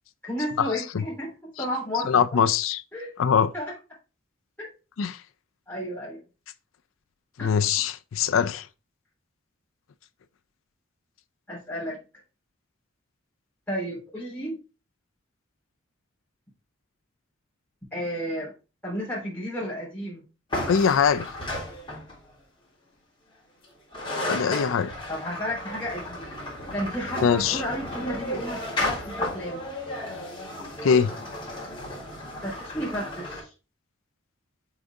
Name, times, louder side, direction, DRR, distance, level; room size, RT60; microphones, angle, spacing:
voice 1, 0.2-1.3 1.6-2.4 2.9-3.1 3.5-3.7 4.6-4.7 5.7-6.2 7.4-7.5 11.5-12.0 13.7-14.6 17.9-18.5 18.8-20.2 25.1-26.2 26.7-29.7 32.4-33.5, equal, 10° left, 3.1 m, -32 dB
voice 2, 2.1-2.8 3.2-3.5 5.0-5.2 7.4-8.7 20.7-21.3 24.3-24.9 27.2-27.6 30.8-31.1, left 7 dB, 90° left, 0.4 m, -22 dB
sound 1, 20.5-22.3 23.6-23.7 23.9-33.4, left 1 dB, 25° left, 3.1 m, -33 dB
7.4 x 4.0 x 3.4 m
head